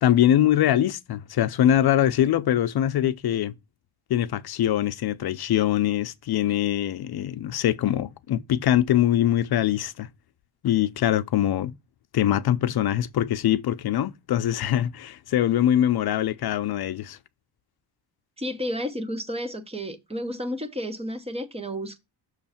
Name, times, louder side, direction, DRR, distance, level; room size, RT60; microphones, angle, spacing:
voice 1, 0.0-3.5 4.1-10.1 10.6-11.7 12.1-17.2, left 11 dB, 65° left, 0.6 m, -23 dB
voice 2, 18.4-22.0, equal, 15° right, 0.8 m, -31 dB
6.2 x 3.3 x 5.7 m
wide cardioid pair, 145°, 41 cm